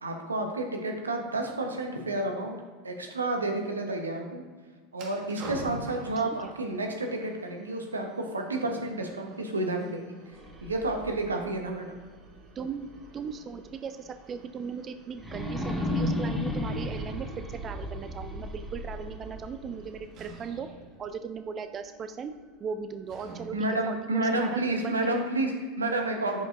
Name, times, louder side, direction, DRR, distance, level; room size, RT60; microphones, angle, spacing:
voice 1, 0.0-2.6 2.8-4.4 4.9-10.2 10.6-12.0 23.5-26.4, right 2 dB, 85° right, 3 dB, 0.9 m, -30 dB
sound 1, 4.9-23.8, right 4 dB, 50° right, 1.4 m, -49 dB
sound 2, 10.2-13.2 13.7-13.8 15.1-20.2, left 1 dB, ahead, 1.2 m, -34 dB
voice 2, 12.6-20.7 21.0-22.3 22.6-23.5 23.9-24.9, right 6 dB, 35° right, 9 dB, 0.4 m, -38 dB
10.5 x 5.2 x 2.5 m, 1.5 s
figure-of-eight pair, 80°, 0 cm